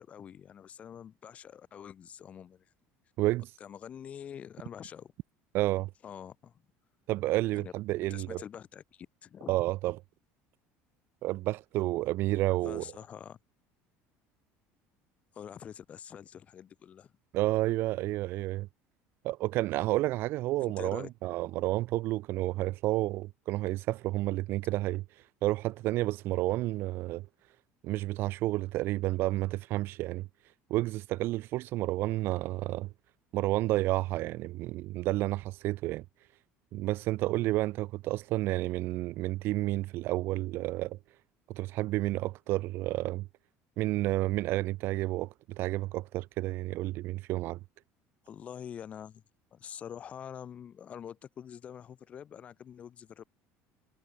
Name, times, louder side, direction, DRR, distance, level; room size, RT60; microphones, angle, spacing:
voice 1, 0.0-2.7 3.6-5.1 6.0-6.6 7.5-7.7 8.1-9.6 12.6-13.4 15.3-17.1 20.6-21.1 48.2-49.2 49.5-53.2, left 8 dB, 25° left, 1.0 m, -45 dB
voice 2, 3.2-3.5 5.5-5.9 7.1-8.4 9.5-10.0 11.2-12.8 17.3-18.7 19.2-25.0 25.4-27.3 27.8-30.3 30.7-32.9 33.3-36.0 36.7-41.0 41.5-43.3 43.8-47.6, right 17 dB, 45° right, 0.6 m, -30 dB
cardioid pair, 175°, 5 cm